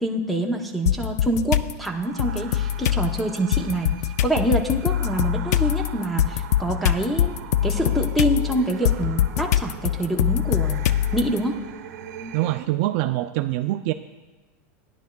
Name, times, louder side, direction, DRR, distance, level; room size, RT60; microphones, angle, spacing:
voice 1, 0.0-3.9 4.2-7.3 7.6-10.9 11.1-11.5, right 1 dB, ahead, 3 dB, 0.7 m, -25 dB
sound 1, 0.9-1.7 2.2-11.4, left 11 dB, 85° left, 0.4 m, -23 dB
sound 2, 1.9-12.7, right 8 dB, 85° right, 0.8 m, -41 dB
voice 2, 12.3-13.9, right 16 dB, 45° right, 9 dB, 0.3 m, -24 dB
15.0 x 10.5 x 2.3 m, 1.2 s
supercardioid pair, 160°, 9 cm